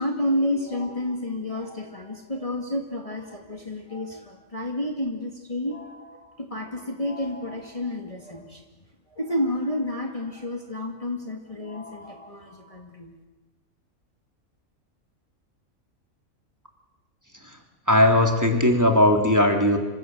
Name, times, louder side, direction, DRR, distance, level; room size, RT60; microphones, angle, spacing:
voice 1, 0.0-8.6 9.1-13.1, left 1 dB, 25° left, 2 dB, 2.5 m, -30 dB
voice 2, 17.9-19.8, left 1 dB, 10° right, 2 dB, 3.4 m, -18 dB
27.5 x 25.5 x 7.9 m, 1.1 s
omnidirectional pair, 1.5 m